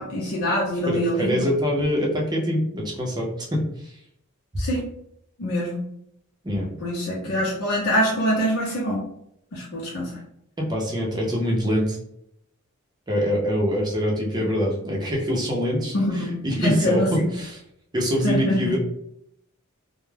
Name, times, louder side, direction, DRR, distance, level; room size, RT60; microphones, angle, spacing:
voice 1, 0.0-1.5 4.6-4.9 5.4-5.8 6.8-9.0 9.5-10.2 14.4-14.5 15.9-17.3 18.2-18.7, equal, 90° left, -5 dB, 0.6 m, -24 dB
voice 2, 0.9-3.9 6.4-6.7 7.3-7.4 10.6-12.0 13.1-17.6 17.9-18.8, equal, 20° right, -2 dB, 0.5 m, -24 dB
2.2 x 2.0 x 3.1 m, 0.76 s
head